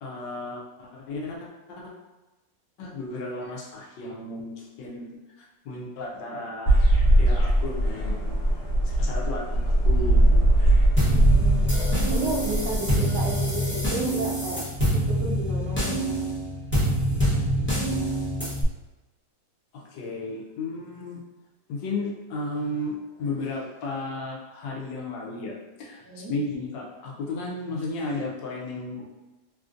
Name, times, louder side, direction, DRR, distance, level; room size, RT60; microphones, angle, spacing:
voice 1, 0.0-1.4 1.7-1.9 2.8-5.1 5.4-6.8 7.2-8.4 8.8-10.4 19.7-21.2 21.7-29.0, left 2 dB, 80° left, -2 dB, 1.3 m, -34 dB
sound 1, 6.7-12.7, right 1 dB, 50° left, 1.0 m, -20 dB
sound 2, 11.0-18.6, equal, 20° left, 0.3 m, -25 dB
voice 2, 11.1-11.7 12.1-14.7 14.9-16.0 26.0-26.4, right 2 dB, 70° right, -1 dB, 1.0 m, -33 dB
3.3 x 2.5 x 2.5 m, 1.1 s
omnidirectional pair, 2.0 m